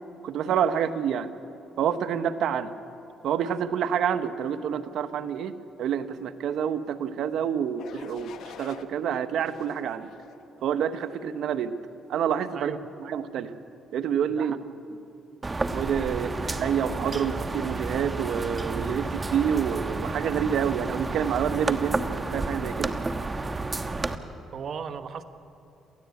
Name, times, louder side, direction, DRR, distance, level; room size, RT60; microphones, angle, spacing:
voice 1, 0.2-1.3 1.8-2.7 3.2-5.5 5.8-10.1 10.6-11.7 12.1-12.7 13.0-13.5 13.9-14.6 15.7-22.9, right 8 dB, 75° right, 10 dB, 1.1 m, -28 dB
sound 1, 7.8-8.9 9.4-10.4 11.0-11.4, left 7 dB, 75° left, 1.3 m, -46 dB
sound 2, 15.4-24.2, right 3 dB, 25° right, 1.2 m, -31 dB
voice 2, 24.5-25.2, right 6 dB, 55° right, 10 dB, 1.3 m, -36 dB
27.5 x 15.5 x 8.5 m, 3.0 s
cardioid pair, 90°, 0 cm